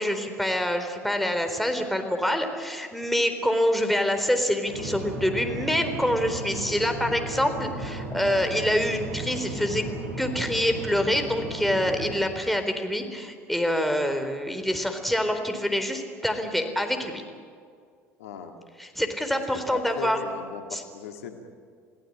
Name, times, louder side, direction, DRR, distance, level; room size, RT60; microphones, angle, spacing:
voice 1, 0.0-9.8 10.2-17.2 18.8-20.2 20.7-20.8, equal, ahead, 6 dB, 4.0 m, -26 dB
sound 1, 4.7-12.2, right 2 dB, 85° right, 5.4 m, -35 dB
voice 2, 18.2-18.5 19.3-19.4 19.7-21.4, left 7 dB, 80° left, 5 dB, 2.2 m, -38 dB
28.5 x 18.0 x 8.8 m, 2.2 s
hypercardioid pair, 70°, 8 cm